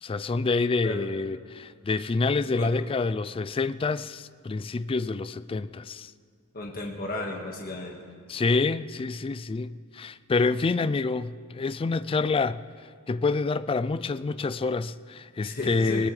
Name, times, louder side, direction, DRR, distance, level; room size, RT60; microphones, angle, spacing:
voice 1, 0.0-6.1 8.3-12.6 13.1-16.1, left 3 dB, 25° left, 0.3 m, -27 dB
voice 2, 6.5-8.0 15.4-16.1, left 2 dB, 45° left, 1.6 m, -34 dB
21.0 x 20.0 x 3.3 m
head